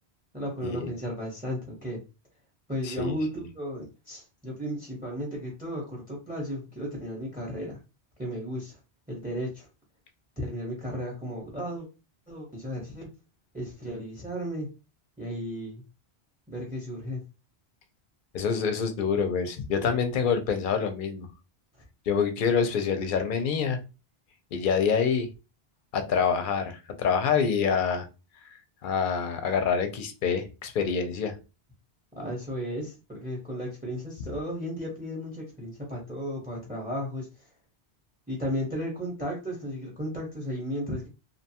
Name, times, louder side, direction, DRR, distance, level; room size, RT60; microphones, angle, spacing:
voice 1, 0.3-2.0 2.7-7.8 8.2-8.8 9.1-9.7 10.4-11.9 12.3-13.1 13.5-14.7 15.2-15.8 16.5-17.2 21.7-21.8 32.1-37.3 38.3-41.1, equal, 10° right, 0.7 m, -34 dB
voice 2, 2.8-3.2 18.3-21.3 22.1-23.8 24.5-25.3 25.9-28.1 28.8-31.4, left 6 dB, 60° left, 0.6 m, -26 dB
2.6 x 2.2 x 2.7 m
omnidirectional pair, 1.1 m